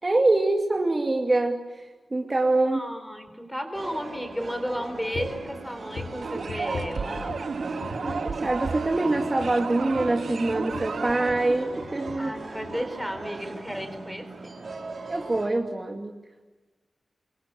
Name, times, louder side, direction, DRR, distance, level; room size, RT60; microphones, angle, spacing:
voice 1, 0.0-1.6 2.1-2.8 7.6-7.7 8.0-12.3 15.1-16.1, right 2 dB, 25° right, 3 dB, 2.4 m, -24 dB
voice 2, 2.7-7.4 12.2-14.5, equal, 5° left, 7 dB, 4.0 m, -34 dB
sound 1, 3.7-15.5, right 3 dB, 50° right, 4.5 m, -37 dB
sound 2, 5.1-5.5 5.9-7.5 7.8-8.3 8.6-8.9 9.1-11.5 11.8-12.3 12.6-12.8 13.1-13.3, left 4 dB, 80° left, 3.7 m, -40 dB
sound 3, 6.2-11.5, right 5 dB, 65° right, 1.7 m, -34 dB
27.0 x 23.5 x 8.6 m, 1.2 s
wide cardioid pair, 170°, 0 cm